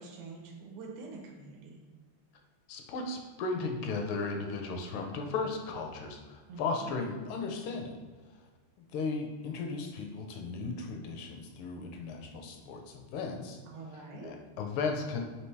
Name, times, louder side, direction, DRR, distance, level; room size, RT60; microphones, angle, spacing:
voice 1, 0.0-1.8 6.5-6.9 13.7-14.3, right 3 dB, 80° right, 0 dB, 1.6 m, -45 dB
voice 2, 2.7-8.0 8.9-13.6 13.9-15.2, left 4 dB, 80° left, 3 dB, 1.4 m, -36 dB
4.5 x 2.8 x 3.2 m, 1.4 s
omnidirectional pair, 2.4 m